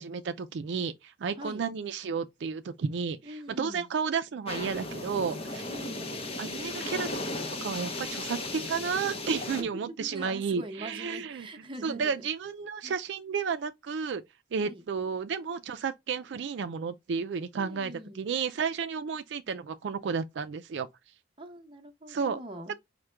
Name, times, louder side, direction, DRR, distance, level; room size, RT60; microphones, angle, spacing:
voice 1, 0.0-5.6 6.4-7.1 7.5-11.5 11.8-14.2 14.5-17.9 18.2-20.9 22.1-22.4, right 6 dB, 70° right, 0.4 m, -32 dB
voice 2, 3.2-3.9 5.7-6.1 9.6-12.3 12.8-13.0 14.6-14.8 17.5-18.3 21.4-22.7, right 1 dB, 25° right, 0.8 m, -43 dB
sound 1, 4.5-9.6, left 2 dB, 30° left, 0.7 m, -36 dB
4.8 x 2.1 x 4.3 m
head